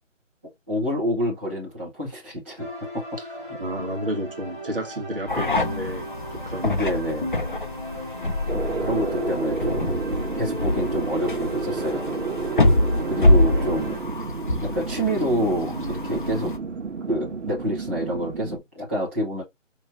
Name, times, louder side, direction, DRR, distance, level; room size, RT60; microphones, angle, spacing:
voice 1, 0.7-2.7 2.9-3.0 3.4-3.6 6.6-7.3 8.8-9.9 10.4-12.1 13.1-14.0 14.6-16.5 17.1-19.4, equal, 10° right, 0.9 m, -27 dB
sound 1, 2.6-14.0, equal, 10° left, 1.2 m, -36 dB
voice 2, 3.6-6.8, right 1 dB, 45° right, 1.3 m, -31 dB
sound 2, 5.3-16.6, left 2 dB, 40° left, 0.6 m, -25 dB
sound 3, 8.5-18.6, right 4 dB, 70° right, 1.2 m, -31 dB
5.2 x 3.0 x 2.6 m
hypercardioid pair, 175°, 38 cm